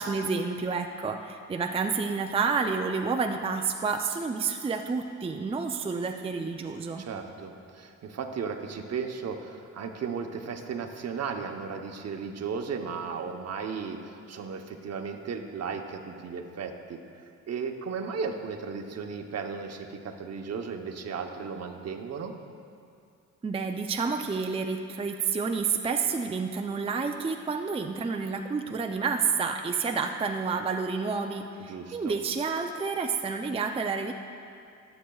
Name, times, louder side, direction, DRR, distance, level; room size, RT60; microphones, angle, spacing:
voice 1, 0.0-7.1 23.4-34.1, right 5 dB, 20° right, 4 dB, 0.5 m, -29 dB
voice 2, 7.0-17.0 17.5-22.3 31.6-32.1, right 5 dB, 55° right, 4 dB, 1.0 m, -35 dB
19.5 x 7.9 x 2.4 m, 2.4 s
cardioid pair, 90°, 30 cm